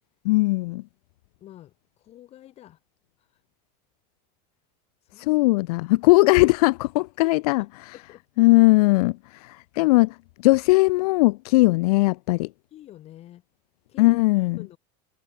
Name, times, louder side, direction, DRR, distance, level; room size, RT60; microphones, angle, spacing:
voice 1, 0.2-0.8 5.2-7.6 8.4-12.5 14.0-14.6, left 22 dB, 80° left, 0.5 m, -19 dB
voice 2, 1.4-2.8 3.2-3.3 5.0-5.6 7.2-7.7 7.9-8.2 12.7-13.4 13.9-14.8, left 13 dB, 35° left, 7.6 m, -48 dB
cardioid pair, 170°, 19 cm